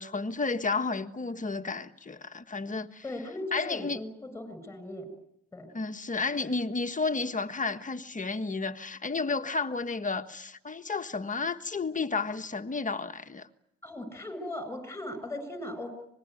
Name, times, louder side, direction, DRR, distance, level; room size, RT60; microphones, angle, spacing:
voice 1, 0.0-3.0 3.5-4.0 5.7-13.5, left 4 dB, 25° left, 1.5 m, -32 dB
voice 2, 3.0-5.1 5.5-5.8 13.8-15.9, left 1 dB, 10° left, 7.5 m, -38 dB
25.5 x 21.0 x 9.2 m
cardioid pair, 90°, 30 cm